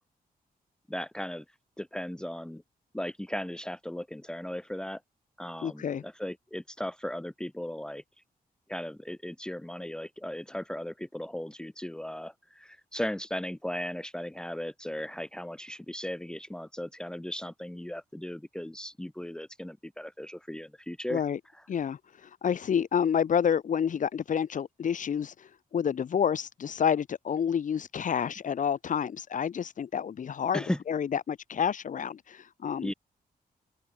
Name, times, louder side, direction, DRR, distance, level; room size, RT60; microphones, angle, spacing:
voice 1, 0.9-1.4 1.8-2.6 2.9-5.0 5.4-8.0 8.7-21.2 21.5-21.6 30.5-30.8 32.8-32.9, left 1 dB, 5° left, 1.2 m, -37 dB
voice 2, 5.6-6.0 21.1-21.4 21.7-22.0 22.4-25.3 25.7-32.9, left 8 dB, 55° left, 2.5 m, -29 dB
open air
wide cardioid pair, 165°, 16 cm